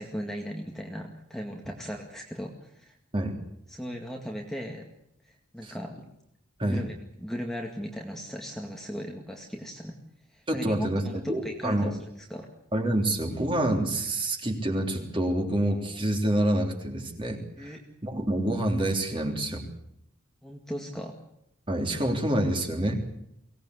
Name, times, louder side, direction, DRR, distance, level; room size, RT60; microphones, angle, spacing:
voice 1, 0.0-2.9 3.7-4.9 5.2-6.0 6.6-9.9 10.3-12.0 12.3-12.5 17.6-17.8 20.4-21.2, equal, ahead, 1 dB, 2.1 m, -37 dB
voice 2, 10.5-11.9 12.7-17.7 18.0-19.7 21.7-23.0, right 1 dB, 25° right, 3 dB, 3.5 m, -27 dB
24.0 x 18.0 x 8.3 m, 0.77 s
head